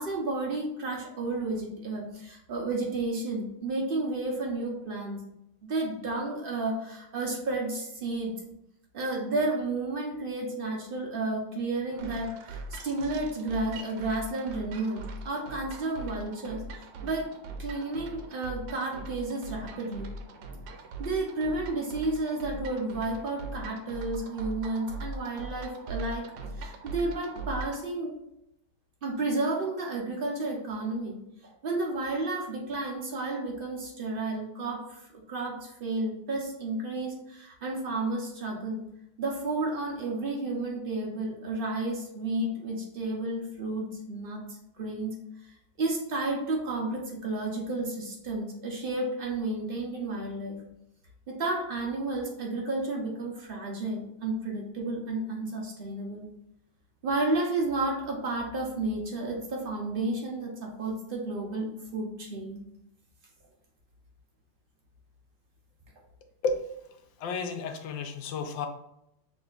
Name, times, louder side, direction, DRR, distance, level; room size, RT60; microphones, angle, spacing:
voice 1, 0.0-5.2 5.6-8.3 8.9-12.6 12.8-16.6 17.0-17.2 17.6-20.1 21.0-26.3 26.6-28.1 29.0-31.2 31.4-38.8 39.2-44.4 44.8-45.1 45.8-50.6 51.3-56.2 57.0-61.7 61.9-62.6, right 2 dB, 55° right, -1 dB, 0.6 m, -32 dB
sound 1, 12.0-27.9, right 2 dB, 85° right, 1.3 m, -41 dB
voice 2, 67.2-68.7, left 4 dB, 85° left, 5 dB, 1.3 m, -31 dB
6.1 x 2.7 x 2.4 m, 0.80 s
omnidirectional pair, 2.0 m